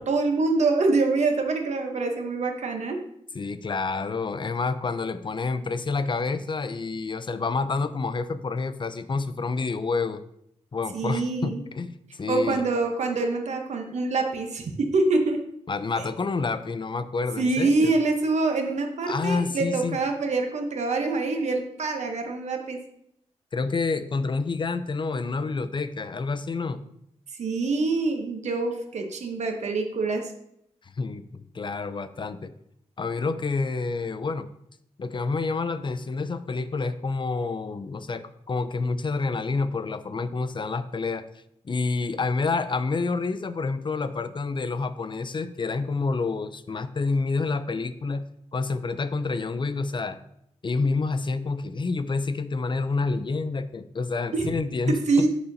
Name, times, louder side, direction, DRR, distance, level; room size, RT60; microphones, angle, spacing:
voice 1, 0.0-3.0 10.9-11.6 12.3-15.4 17.4-22.8 27.4-30.2 54.3-54.5 55.1-55.3, right 3 dB, 75° right, 3 dB, 0.9 m, -25 dB
voice 2, 3.3-10.2 10.7-12.6 15.7-18.0 19.1-20.0 23.5-26.8 30.8-32.5 33.0-34.5 35.0-41.2 41.6-50.2 50.6-55.3, left 4 dB, 45° left, 11 dB, 0.5 m, -28 dB
12.0 x 4.2 x 2.7 m, 0.74 s
cardioid pair, 65°, 12 cm